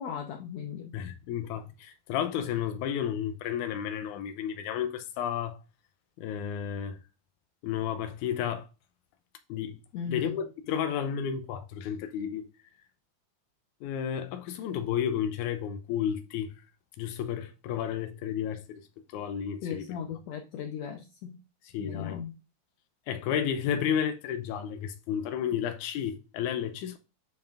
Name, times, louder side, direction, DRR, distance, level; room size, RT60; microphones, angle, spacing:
voice 1, 0.0-0.9 9.9-10.4 19.6-21.4 21.8-22.4, left 7 dB, 70° left, 1.9 m, -37 dB
voice 2, 0.9-5.6 6.2-7.0 7.6-8.7 9.5-9.8 10.1-12.5 13.8-16.5 17.0-18.8 19.1-19.9 21.7-22.2 23.1-27.0, left 9 dB, 90° left, 2.2 m, -32 dB
9.0 x 5.5 x 2.5 m
omnidirectional pair, 3.5 m